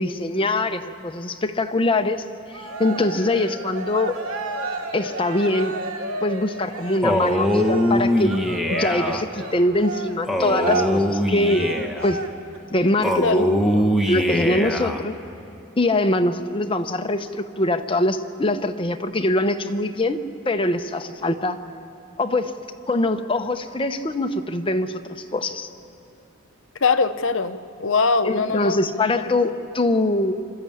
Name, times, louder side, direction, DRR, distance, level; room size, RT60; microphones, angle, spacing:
voice 1, 0.0-2.2 2.5-4.2 4.9-5.7 6.2-8.3 8.7-11.7 12.0-12.2 12.7-13.5 14.1-15.2 15.8-20.2 20.5-21.6 22.2-22.5 22.9-25.7 28.2-30.3, left 2 dB, 25° left, 7 dB, 0.8 m, -23 dB
Cheering, 2.5-12.6, right 3 dB, 70° right, 1.5 m, -32 dB
Male speech man speaking, 7.0-9.2 10.3-12.1 13.0-15.0, left 1 dB, ahead, 1.0 m, -22 dB
voice 2, 26.8-29.1, left 4 dB, 60° left, 11 dB, 0.7 m, -22 dB
25.5 x 13.5 x 8.6 m, 2.7 s
head